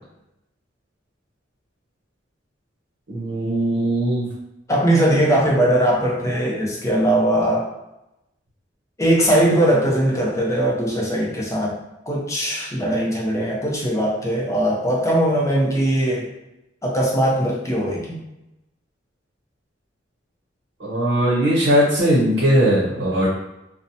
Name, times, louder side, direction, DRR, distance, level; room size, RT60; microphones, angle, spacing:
voice 1, 3.1-4.3 20.8-23.3, equal, 65° right, -6 dB, 0.7 m, -19 dB
voice 2, 4.7-7.7 9.0-11.8 12.1-16.3 16.8-18.2, right 1 dB, 15° left, -3 dB, 0.6 m, -20 dB
2.7 x 2.1 x 2.6 m, 0.90 s
head